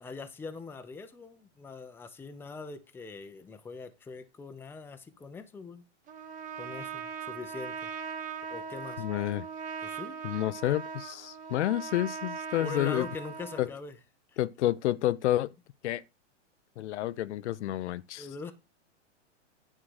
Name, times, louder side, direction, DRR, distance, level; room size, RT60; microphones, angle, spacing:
voice 1, 0.0-5.8 6.6-7.9 8.5-9.0 9.8-10.2 12.6-13.9 18.2-18.5, left 4 dB, 5° left, 0.6 m, -42 dB
Trumpet, 6.1-13.7, right 6 dB, 20° right, 1.0 m, -40 dB
voice 2, 9.0-9.5 10.2-13.1 13.6-13.7 14.4-15.5 15.8-16.0 16.8-18.3, left 14 dB, 70° left, 0.6 m, -29 dB
9.9 x 3.8 x 6.3 m
hypercardioid pair, 135°, 37 cm